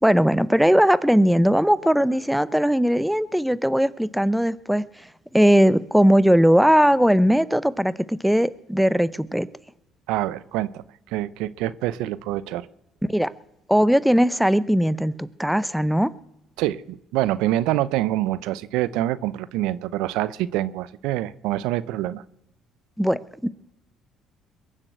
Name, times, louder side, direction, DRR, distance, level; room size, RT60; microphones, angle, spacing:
voice 1, 0.0-4.8 5.3-9.5 13.1-13.3 13.7-16.1 23.0-23.5, equal, ahead, 17 dB, 0.6 m, -19 dB
voice 2, 10.1-12.7 16.6-22.2, right 14 dB, 85° right, 17 dB, 0.7 m, -26 dB
22.0 x 7.6 x 8.0 m, 0.90 s
cardioid pair, 95°, 0 cm